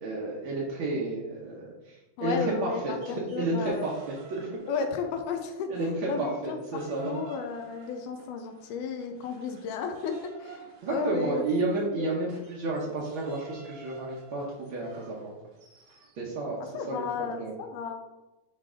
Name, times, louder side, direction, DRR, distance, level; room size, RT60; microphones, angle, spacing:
voice 1, 0.0-2.9 3.3-4.5 5.7-5.9 6.2-7.2 10.8-15.3 16.2-17.5, right 2 dB, 70° right, -4 dB, 1.2 m, -31 dB
voice 2, 2.2-3.9 4.7-5.7 6.1-11.4 12.0-12.2 16.7-18.0, left 5 dB, 85° left, 5 dB, 2.3 m, -33 dB
sound 1, 2.8-5.6 5.9-16.2, right 3 dB, 90° right, 2.9 m, -52 dB
9.5 x 3.2 x 3.7 m, 1.1 s
omnidirectional pair, 3.6 m